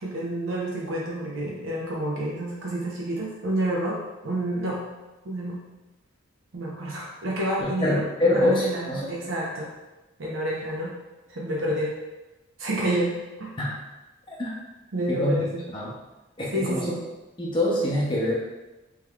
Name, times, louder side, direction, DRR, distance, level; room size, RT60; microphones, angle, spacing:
voice 1, 0.0-4.8 5.2-5.6 6.5-8.0 8.3-9.7 10.2-10.9 11.3-11.9 12.6-13.1 13.4-13.5 14.9-15.6 16.5-17.0, right 1 dB, 75° right, -4 dB, 0.7 m, -29 dB
voice 2, 7.6-9.1 13.6-13.7 14.3-14.5 15.1-15.4 15.7-15.9 16.4-17.0 17.4-18.4, left 1 dB, 25° left, -4 dB, 0.6 m, -25 dB
3.6 x 3.1 x 2.3 m, 1.1 s
head